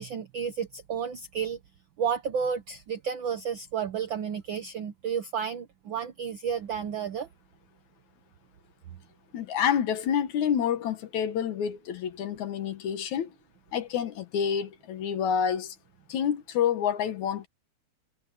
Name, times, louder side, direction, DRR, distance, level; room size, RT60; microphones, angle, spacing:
voice 1, 0.0-1.6 2.0-7.3, right 7 dB, 75° right, 1.1 m, -31 dB
voice 2, 9.3-13.3 13.7-15.8 16.1-17.5, left 8 dB, 80° left, 2.8 m, -28 dB
omnidirectional pair, 3.3 m